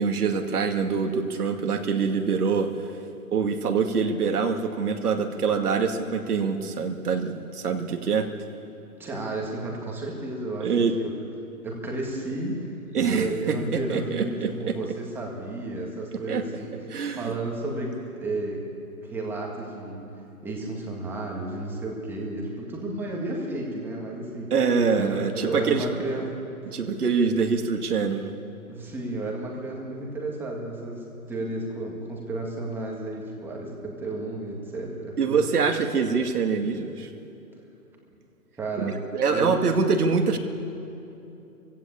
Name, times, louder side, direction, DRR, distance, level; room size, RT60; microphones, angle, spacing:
voice 1, 0.0-2.7 3.3-8.3 10.6-11.0 12.9-14.8 16.3-16.4 16.9-17.3 24.5-25.9 26.7-28.3 35.2-37.1 38.8-40.4, right 5 dB, 75° right, 4 dB, 2.3 m, -25 dB
voice 2, 9.0-10.7 11.0-11.1 11.6-12.7 12.9-16.7 17.2-18.6 19.0-20.1 20.4-24.5 24.9-26.4 26.7-26.8 28.7-35.4 38.6-39.0 39.2-39.5, right 2 dB, 5° right, -2 dB, 1.8 m, -32 dB
24.0 x 16.0 x 8.6 m, 2.9 s
hypercardioid pair, 165°, 45 cm